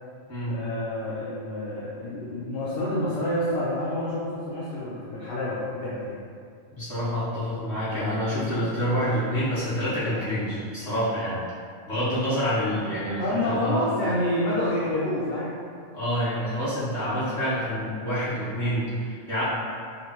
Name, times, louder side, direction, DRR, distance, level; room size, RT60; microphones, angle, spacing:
voice 1, 0.5-6.2 13.2-15.6, left 1 dB, 60° left, -8 dB, 0.7 m, -28 dB
voice 2, 6.7-11.4 11.9-13.8 15.9-19.4, equal, 35° left, -13 dB, 1.6 m, -27 dB
5.2 x 2.1 x 2.9 m, 2.2 s
omnidirectional pair, 1.3 m